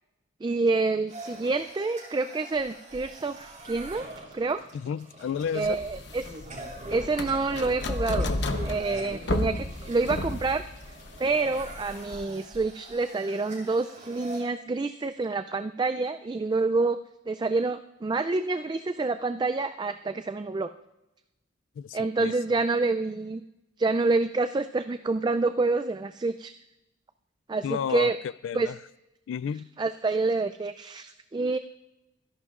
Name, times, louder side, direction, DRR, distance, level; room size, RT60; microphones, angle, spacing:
voice 1, 0.4-4.1 4.3-4.6 5.5-6.3 6.9-8.3 8.6-10.6 11.2-17.0 17.3-20.7 21.9-23.4 23.8-26.5 27.5-28.2 28.5-28.7 29.8-31.6, right 3 dB, 25° right, 0.3 m, -27 dB
sound 1, 1.1-14.4, right 1 dB, 40° right, 4.7 m, -44 dB
voice 2, 4.7-5.8 21.8-22.3 27.6-28.1 28.4-28.7 29.3-29.7, left 7 dB, 85° left, 0.3 m, -31 dB
sound 2, 5.6-12.2, left 2 dB, 65° left, 0.9 m, -33 dB
25.5 x 11.0 x 2.4 m
head